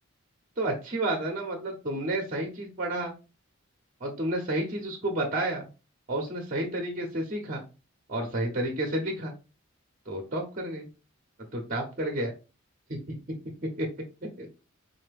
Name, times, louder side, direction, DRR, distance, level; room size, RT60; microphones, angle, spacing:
voice 1, 0.6-3.1 4.0-5.7 6.1-7.6 8.1-9.3 10.1-10.9 11.5-12.3 12.9-13.9 14.4-14.6, right 1 dB, 40° right, 2 dB, 0.8 m, -31 dB
4.0 x 2.8 x 3.3 m, 0.30 s
head